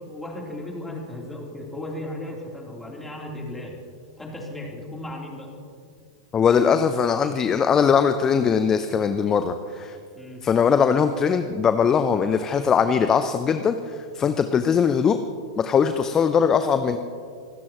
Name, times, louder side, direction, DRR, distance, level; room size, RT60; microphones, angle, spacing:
voice 1, 0.0-3.8 4.2-5.5 10.2-10.4, left 1 dB, 10° left, -2 dB, 3.5 m, -35 dB
voice 2, 6.3-10.0 10.4-15.2 15.6-17.0, left 6 dB, 25° left, 9 dB, 0.7 m, -21 dB
25.5 x 13.5 x 3.1 m, 2.2 s
hypercardioid pair, 95°, 2 cm